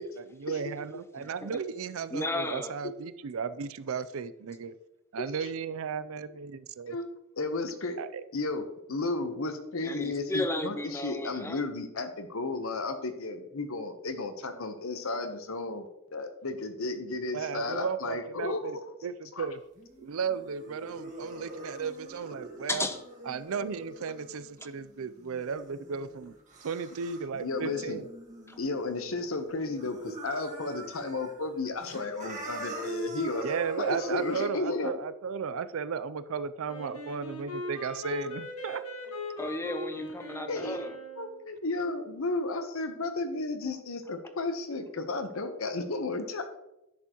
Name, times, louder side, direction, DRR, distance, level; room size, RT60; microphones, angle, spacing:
voice 1, 0.0-4.7 5.1-7.0 8.0-8.2 17.3-18.8 19.0-19.6 20.0-22.9 23.3-26.3 26.6-28.1 33.4-38.8, right 6 dB, 70° right, 14 dB, 0.4 m, -35 dB
voice 2, 1.2-1.6 2.1-2.7 9.8-11.6 21.6-21.7 22.7-23.0 39.4-41.0, left 1 dB, 10° left, 7 dB, 0.7 m, -34 dB
voice 3, 7.4-8.0 8.3-18.8 19.3-19.5 27.4-28.0 28.6-33.5 33.8-34.9 40.5-40.9 41.2-46.6, left 3 dB, 70° left, 8 dB, 0.9 m, -33 dB
sound 1, 19.8-29.4 29.7-31.3 31.7-34.5, right 2 dB, 35° right, 1.6 m, -42 dB
Wind instrument woodwind instrument, 36.7-41.4, left 1 dB, 85° left, 1.5 m, -40 dB
10.5 x 6.8 x 3.0 m, 0.89 s
head